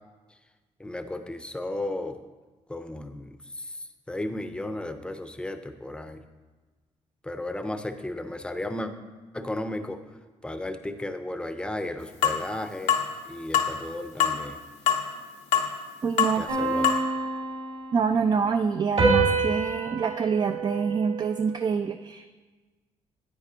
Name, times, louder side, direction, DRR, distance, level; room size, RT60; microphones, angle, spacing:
voice 1, 0.8-2.2 2.7-6.2 7.2-8.9 9.3-10.0 10.4-12.9 13.2-14.6 16.3-16.9, left 1 dB, 10° left, 9 dB, 0.6 m, -34 dB
sound 1, 12.2-12.4 12.9-13.1 13.5-13.7 14.2-14.4 14.9-15.0 15.5-15.7 16.2-16.4 16.8-17.0, left 8 dB, 90° left, 0.8 m, -22 dB
voice 2, 16.0-16.4 17.9-22.3, right 6 dB, 35° right, 8 dB, 0.4 m, -26 dB
sound 2, 16.5-18.3 19.0-21.6, right 3 dB, 70° right, 2.9 m, -27 dB
9.9 x 8.6 x 2.8 m, 1.3 s
cardioid pair, 85°, 12 cm